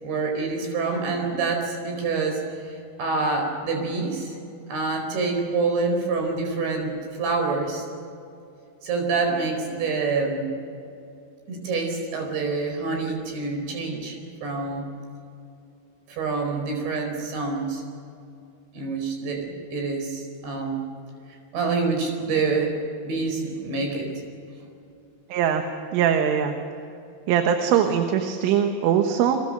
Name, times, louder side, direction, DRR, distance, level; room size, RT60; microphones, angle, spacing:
voice 1, 0.0-4.4 4.7-7.8 8.8-10.5 11.5-14.9 16.1-17.8 18.7-20.8 21.5-22.7 23.0-24.2, right 4 dB, 60° right, 3 dB, 6.6 m, -27 dB
voice 2, 25.3-25.6 25.9-26.5 27.3-29.4, right 8 dB, 75° right, 5 dB, 3.7 m, -21 dB
29.5 x 23.5 x 6.6 m, 2.6 s
omnidirectional pair, 5.9 m